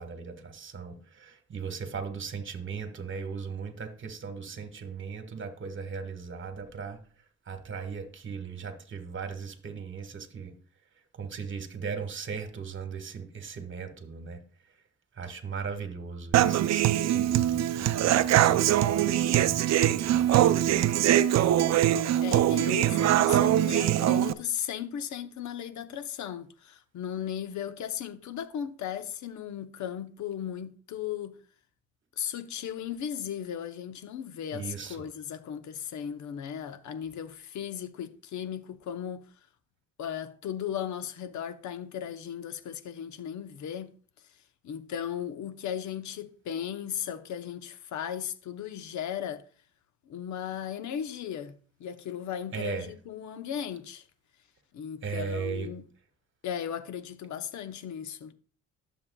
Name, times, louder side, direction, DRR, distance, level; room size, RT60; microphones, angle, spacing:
voice 1, 0.0-7.0 7.4-10.6 11.1-14.4 14.7-14.8 15.1-20.9 34.5-35.0 52.5-52.9 55.0-55.7, right 5 dB, 40° right, 1.5 m, -38 dB
Human voice / Acoustic guitar, 16.3-24.3, right 12 dB, 60° right, 0.5 m, -23 dB
voice 2, 22.2-31.4 32.2-39.3 40.0-43.9 44.6-49.5 50.1-54.1 54.7-55.8 56.4-58.3, left 9 dB, 70° left, 0.9 m, -36 dB
12.0 x 7.2 x 2.3 m
cardioid pair, 90°, 30 cm